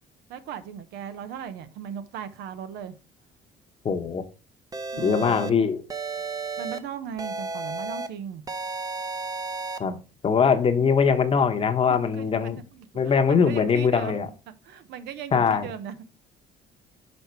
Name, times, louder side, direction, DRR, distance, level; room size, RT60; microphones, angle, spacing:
voice 1, 0.3-2.9 4.9-5.5 6.6-8.4 11.9-15.9, right 8 dB, 85° right, 0.8 m, -38 dB
voice 2, 3.8-4.2 5.0-5.8 9.8-10.0 10.2-12.6 13.0-14.3 15.3-15.7, left 6 dB, 35° left, 1.0 m, -22 dB
sound 1, 4.7-5.5 5.9-6.8 7.2-8.1 8.5-9.8, right 3 dB, 20° right, 0.7 m, -33 dB
5.8 x 5.4 x 4.4 m
cardioid pair, 110°, 17 cm